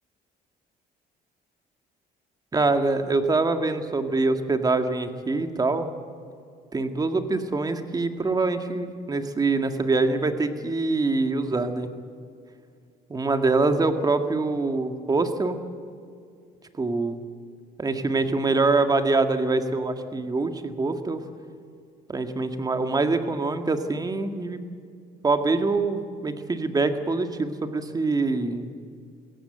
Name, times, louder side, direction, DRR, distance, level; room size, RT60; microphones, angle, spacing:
voice 1, 2.5-5.9 6.7-11.9 13.1-15.6 16.8-17.2 17.8-21.2 22.1-24.6 25.2-28.7, right 3 dB, 20° right, 7 dB, 2.0 m, -24 dB
21.5 x 17.0 x 8.1 m, 2.3 s
cardioid pair, 110°, 17 cm